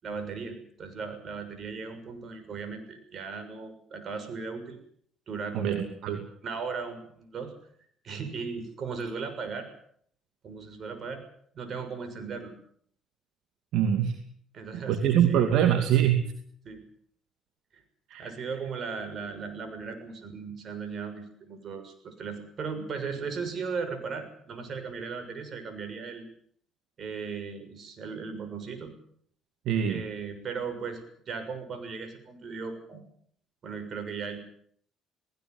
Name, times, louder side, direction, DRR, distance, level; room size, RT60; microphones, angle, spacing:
voice 1, 0.0-4.8 5.3-5.9 6.4-7.5 8.0-9.7 10.4-11.2 11.5-12.5 14.5-15.5 16.6-16.8 17.7-17.8 18.2-26.2 27.0-28.9 29.8-31.0 31.3-33.0 33.6-34.4, right 5 dB, 50° right, 8 dB, 6.7 m, -37 dB
voice 2, 5.5-6.2 13.7-14.2 14.7-16.3 18.1-18.2 29.7-30.0, right 9 dB, 75° right, 7 dB, 2.5 m, -24 dB
19.0 x 18.0 x 9.6 m, 0.64 s
supercardioid pair, 75°, 0 cm